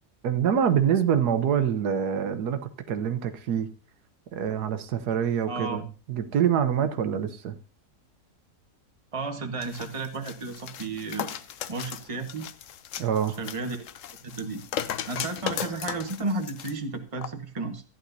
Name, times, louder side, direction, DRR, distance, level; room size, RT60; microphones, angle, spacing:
voice 1, 0.2-3.7 4.3-7.6 13.0-13.4, right 8 dB, 80° right, 1.4 m, -25 dB
voice 2, 5.5-5.8 9.1-11.4 11.7-12.5 13.4-13.9 14.2-14.6 15.1-17.8, right 3 dB, 20° right, 1.2 m, -33 dB
sound 1, 9.6-16.7 17.2-17.3, left 9 dB, 60° left, 0.9 m, -36 dB
14.5 x 10.5 x 2.7 m
omnidirectional pair, 1.7 m